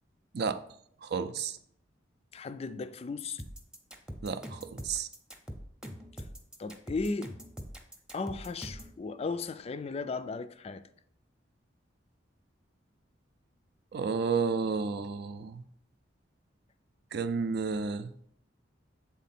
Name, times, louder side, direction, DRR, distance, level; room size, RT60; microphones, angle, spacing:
voice 1, 1.0-1.6 4.2-5.1 13.9-15.6 17.1-18.1, right 5 dB, 60° right, 0.5 m, -31 dB
voice 2, 2.3-3.4 6.6-7.3 8.1-10.8, left 4 dB, 35° left, 0.3 m, -36 dB
sound 1, 3.4-9.0, equal, 5° right, 0.7 m, -43 dB
8.1 x 3.7 x 4.2 m
head